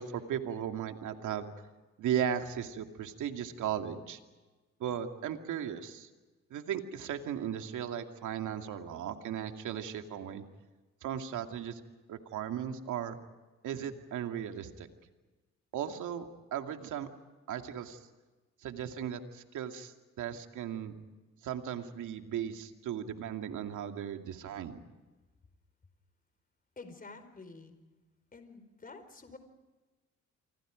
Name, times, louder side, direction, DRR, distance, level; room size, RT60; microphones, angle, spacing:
voice 1, 0.0-1.5 2.0-4.2 4.8-6.1 6.5-10.4 11.0-11.8 12.1-13.2 13.6-14.9 15.7-17.1 17.5-18.0 18.6-20.9 21.4-24.8, right 9 dB, 80° right, 5 dB, 2.4 m, -36 dB
voice 2, 26.8-27.8 28.3-29.4, left 3 dB, 30° left, 9 dB, 4.8 m, -49 dB
29.5 x 25.0 x 5.1 m, 1.2 s
cardioid pair, 90°, 30 cm